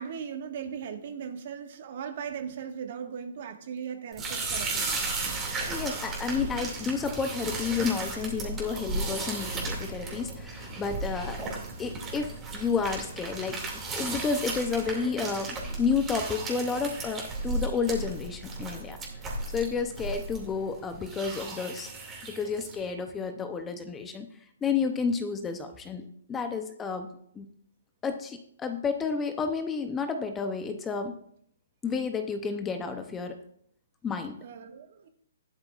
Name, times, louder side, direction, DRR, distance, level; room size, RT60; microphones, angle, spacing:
voice 1, 0.0-5.0 34.4-35.1, right 7 dB, 50° right, 5 dB, 1.6 m, -38 dB
sound 1, 4.1-22.9, right 3 dB, 15° right, 2.4 m, -35 dB
voice 2, 5.7-13.6 13.9-19.0 19.5-21.9 22.2-24.3 24.6-27.1 27.3-27.5 28.0-31.2 31.8-33.4 34.0-34.4, left 5 dB, 10° left, 7 dB, 0.6 m, -31 dB
13.5 x 12.0 x 2.5 m, 0.68 s
hypercardioid pair, 160°, 0 cm